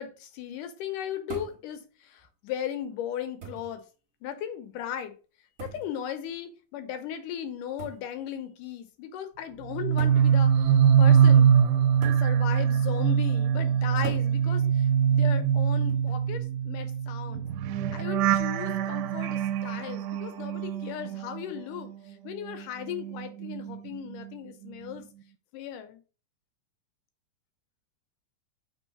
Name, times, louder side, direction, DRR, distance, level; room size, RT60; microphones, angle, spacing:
voice 1, 0.0-3.8 4.2-5.1 5.6-10.5 11.0-11.5 12.0-17.5 17.9-25.1 25.5-26.0, left 10 dB, 80° left, 2.4 m, -37 dB
sound 1, 1.3-1.7 2.7-2.8 3.4-3.8 5.6-5.9 7.8-8.1 9.1-9.2 10.0-10.3 12.0-12.3 14.0-14.3 15.9-16.3, right 6 dB, 40° right, 1.4 m, -41 dB
sound 2, 9.7-22.0 22.3-24.3 24.6-25.0, right 8 dB, 80° right, 2.0 m, -24 dB
4.6 x 3.8 x 5.3 m
omnidirectional pair, 3.8 m